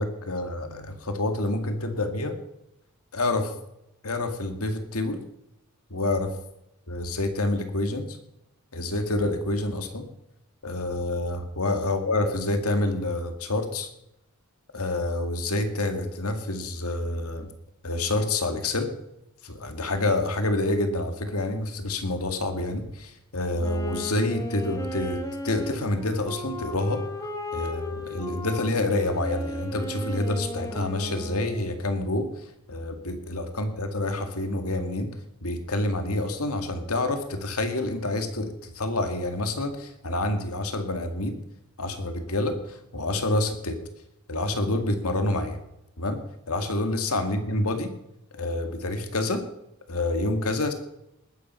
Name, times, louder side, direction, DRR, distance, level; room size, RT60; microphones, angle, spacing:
voice 1, 0.0-2.4 3.1-3.5 4.0-5.2 5.9-6.3 6.9-8.2 8.7-10.0 10.6-13.9 14.7-17.5 17.8-18.9 19.4-27.0 27.5-32.3 32.7-35.1 35.4-41.4 41.8-43.8 44.3-45.6 46.0-46.2 46.5-47.9 48.3-49.4 49.9-50.7, left 2 dB, 80° left, 6 dB, 2.2 m, -27 dB
Wind instrument woodwind instrument, 23.6-31.9, left 1 dB, 15° left, 2.0 m, -36 dB
20.0 x 9.3 x 5.7 m, 0.84 s
head